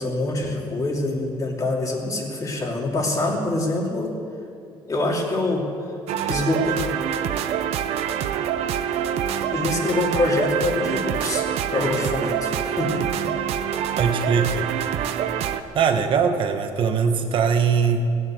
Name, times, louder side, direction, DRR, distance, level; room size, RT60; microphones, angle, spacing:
voice 1, 0.0-4.1 4.9-5.7 6.2-6.8 9.5-11.4 11.7-13.0, left 2 dB, 35° left, 0 dB, 2.8 m, -25 dB
sound 1, 6.1-15.6, right 9 dB, 90° right, 0.7 m, -26 dB
voice 2, 14.0-14.7 15.7-18.2, right 6 dB, 55° right, 6 dB, 1.4 m, -21 dB
17.0 x 9.4 x 7.9 m, 2.5 s
cardioid pair, 120°, 10 cm